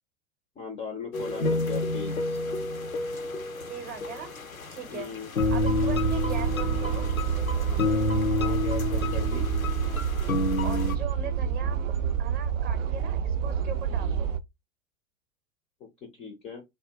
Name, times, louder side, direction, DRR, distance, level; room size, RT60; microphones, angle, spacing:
voice 1, 0.6-2.4 4.9-5.3 8.3-9.5 15.8-16.6, left 6 dB, 15° left, 0.4 m, -38 dB
sound 1, 1.1-11.0, left 3 dB, 90° left, 0.6 m, -29 dB
voice 2, 3.7-5.1 5.5-7.1 10.6-11.8 12.2-14.3, right 7 dB, 25° right, 0.7 m, -40 dB
sound 2, 5.4-14.4, right 8 dB, 70° right, 0.5 m, -28 dB
3.3 x 2.2 x 2.7 m
figure-of-eight pair, 85°, 40 cm